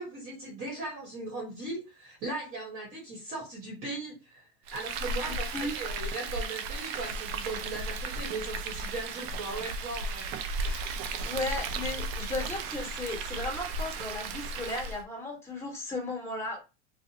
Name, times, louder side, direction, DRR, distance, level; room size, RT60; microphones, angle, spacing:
voice 1, 0.0-10.3 10.5-11.0, right 2 dB, 40° right, -1 dB, 1.1 m, -38 dB
Frying (food), 4.7-15.0, right 3 dB, 65° right, 0.5 m, -35 dB
voice 2, 11.2-16.6, left 2 dB, 10° left, -2 dB, 1.5 m, -35 dB
2.9 x 2.1 x 2.8 m, 0.27 s
supercardioid pair, 120°, 33 cm